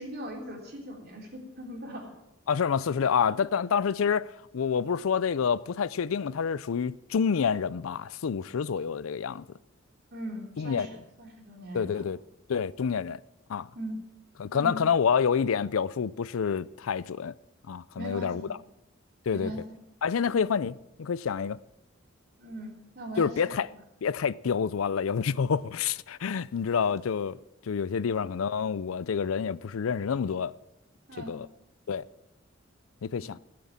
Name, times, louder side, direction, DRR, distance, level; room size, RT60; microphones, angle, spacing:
voice 1, 0.0-2.1 10.1-12.0 13.8-14.0 14.5-14.8 18.0-18.5 19.3-19.8 20.3-20.4 22.4-23.6 28.1-28.3 31.1-31.4 33.1-33.3, equal, 50° right, 3.4 m, -40 dB
voice 2, 2.5-9.5 10.6-10.9 11.7-12.2 12.5-13.2 13.5-13.7 14.4-17.3 17.7-18.4 19.3-19.5 20.0-21.6 23.2-23.7 24.0-27.4 27.7-30.5 31.3-31.5 31.9-32.0 33.0-33.4, left 6 dB, 85° left, 0.4 m, -28 dB
16.0 x 7.7 x 7.3 m
head